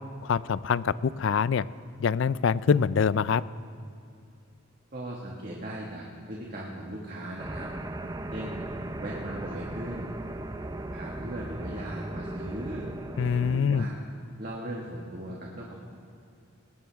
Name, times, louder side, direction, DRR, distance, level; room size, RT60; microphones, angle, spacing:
voice 1, 0.2-1.6 2.0-3.4 13.2-13.9, left 6 dB, 60° left, 18 dB, 0.4 m, -25 dB
voice 2, 4.9-7.7 8.3-8.6 9.0-10.2 10.9-12.9 13.5-13.9 14.4-15.7, right 1 dB, 45° right, -3 dB, 1.7 m, -38 dB
sound 1, 7.4-13.6, right 1 dB, 15° right, 0.5 m, -37 dB
19.5 x 19.5 x 3.5 m, 2.6 s
head